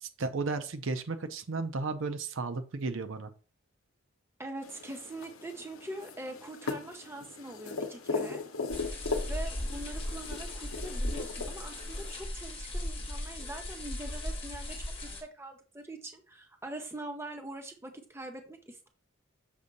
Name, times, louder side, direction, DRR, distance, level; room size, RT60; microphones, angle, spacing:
voice 1, 0.0-3.3, right 3 dB, 70° right, 10 dB, 0.6 m, -34 dB
voice 2, 4.4-8.4 8.8-9.0 9.3-18.9, right 2 dB, 10° right, 4 dB, 0.7 m, -43 dB
sound 1, 4.6-12.1, left 3 dB, 85° left, 0.8 m, -39 dB
sound 2, 8.7-15.2, left 1 dB, 25° left, 1.4 m, -37 dB
6.7 x 2.8 x 5.2 m, 0.37 s
head